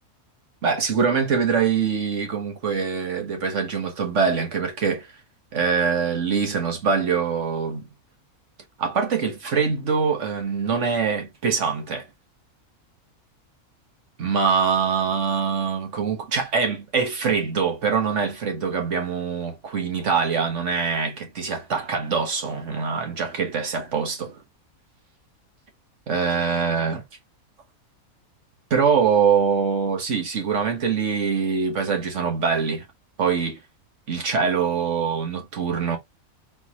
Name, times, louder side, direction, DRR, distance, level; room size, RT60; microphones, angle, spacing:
voice 1, 0.6-5.1 5.5-7.9 8.8-12.1 14.2-24.4 26.1-27.0 28.7-32.8 33.2-33.6 34.1-36.0, right 6 dB, 55° right, 1.6 m, -24 dB
4.2 x 3.4 x 3.0 m
omnidirectional pair, 1.5 m